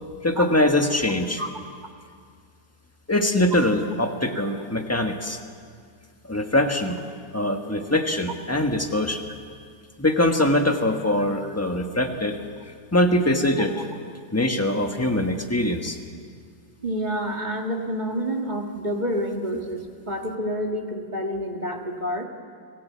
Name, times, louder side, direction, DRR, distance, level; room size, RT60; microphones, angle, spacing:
voice 1, 0.2-1.4 3.1-5.4 6.3-7.0 7.3-9.2 10.0-12.4 12.9-13.9 14.3-16.0, left 1 dB, 10° left, 4 dB, 1.2 m, -22 dB
voice 2, 16.8-22.2, equal, 25° right, 2 dB, 1.8 m, -28 dB
24.5 x 17.5 x 8.4 m, 2.1 s
omnidirectional pair, 1.9 m